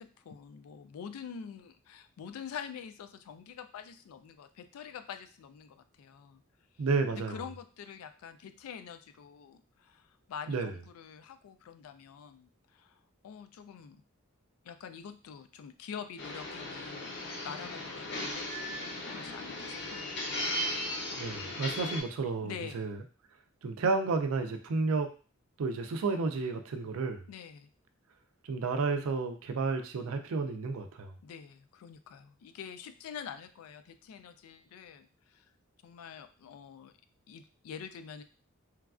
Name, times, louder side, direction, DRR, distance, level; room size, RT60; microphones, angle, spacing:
voice 1, 0.0-6.4 6.7-14.0 14.6-17.1 17.4-20.2 22.4-22.9 27.3-27.7 31.2-35.5 35.8-36.9 37.3-38.2, left 7 dB, 85° left, 11 dB, 0.3 m, -46 dB
voice 2, 6.8-7.4 10.5-10.7 21.2-23.0 23.6-25.1 25.6-27.2 28.4-31.1, right 4 dB, 80° right, 7 dB, 0.4 m, -31 dB
sound 1, 16.2-22.0, left 1 dB, 55° left, 0.6 m, -37 dB
3.1 x 2.3 x 2.4 m, 0.37 s
head